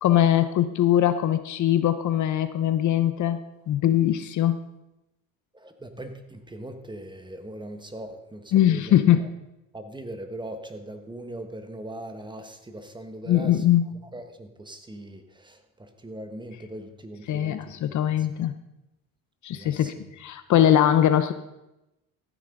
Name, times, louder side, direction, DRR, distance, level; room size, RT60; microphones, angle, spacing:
voice 1, 0.0-3.4 3.7-4.6 8.5-9.2 13.3-13.8 17.3-18.5 19.4-21.3, left 11 dB, 55° left, 11 dB, 0.9 m, -21 dB
voice 2, 5.5-9.3 9.7-13.6 14.1-18.3 19.5-19.9, right 1 dB, 10° right, 7 dB, 1.4 m, -40 dB
15.0 x 9.5 x 3.9 m, 0.92 s
cardioid pair, 100°, 36 cm